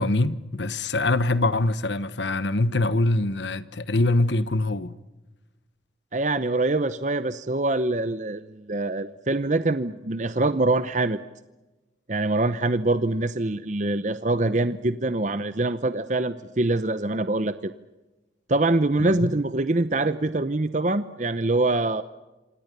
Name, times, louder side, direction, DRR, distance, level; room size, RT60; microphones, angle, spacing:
voice 1, 0.0-4.9 19.0-19.3, left 2 dB, 75° left, 1.2 m, -24 dB
voice 2, 6.1-11.2 12.1-17.7 18.5-22.0, right 2 dB, 40° right, 0.8 m, -24 dB
27.0 x 27.0 x 6.8 m
head